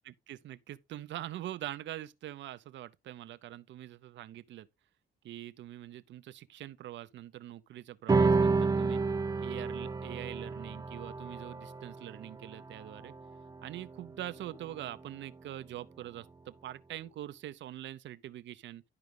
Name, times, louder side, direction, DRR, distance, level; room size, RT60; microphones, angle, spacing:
voice 1, 0.1-4.7 5.2-9.0 9.4-13.1 13.6-18.8, right 13 dB, 65° right, 0.6 m, -44 dB
sound 1, 8.1-14.8, right 4 dB, 20° right, 0.5 m, -31 dB
11.0 x 4.9 x 3.6 m
cardioid pair, 90°, 20 cm